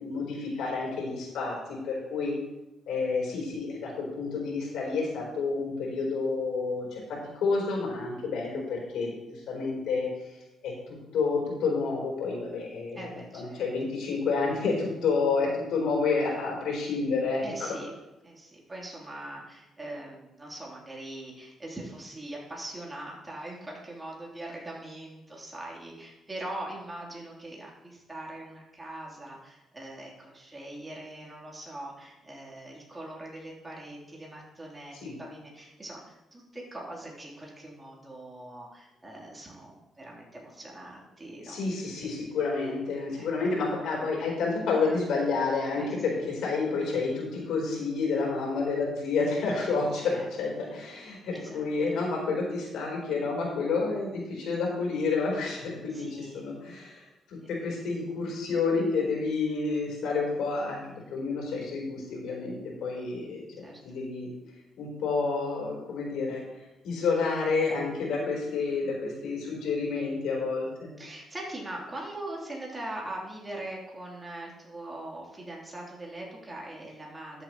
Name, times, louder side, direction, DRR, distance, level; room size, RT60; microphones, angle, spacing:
voice 1, 0.0-2.3 2.9-7.0 7.4-10.1 10.6-10.7 11.1-17.8 35.0-35.1 41.4-57.0 57.3-60.8 61.1-64.3 64.8-66.4 66.8-70.9, left 4 dB, 80° left, -2 dB, 3.8 m, -29 dB
voice 2, 13.0-13.6 17.4-17.9 18.2-41.6 41.9-42.1 43.2-43.3 45.8-45.9 50.0-50.3 51.3-51.7 55.9-56.4 57.4-57.5 63.6-63.8 71.0-77.4, right 1 dB, 20° right, -3 dB, 3.4 m, -41 dB
12.5 x 7.8 x 3.1 m, 0.98 s
cardioid pair, 90°, 0 cm